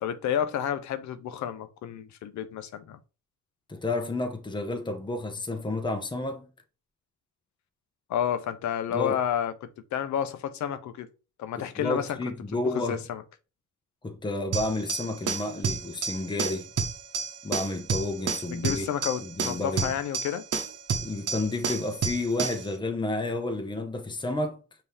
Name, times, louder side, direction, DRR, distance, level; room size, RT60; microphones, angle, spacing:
voice 1, 0.0-3.0 8.1-11.1 11.4-12.2 12.5-13.2 18.5-20.4, left 9 dB, 70° left, 0.7 m, -30 dB
voice 2, 3.7-6.5 8.9-9.2 11.6-13.0 14.0-16.7 17.4-18.9 19.2-19.9 21.0-24.6, left 2 dB, 15° left, 0.9 m, -31 dB
sound 1, 14.5-22.7, right 6 dB, 55° right, 1.1 m, -31 dB
5.4 x 2.9 x 3.4 m
cardioid pair, 90°, 30 cm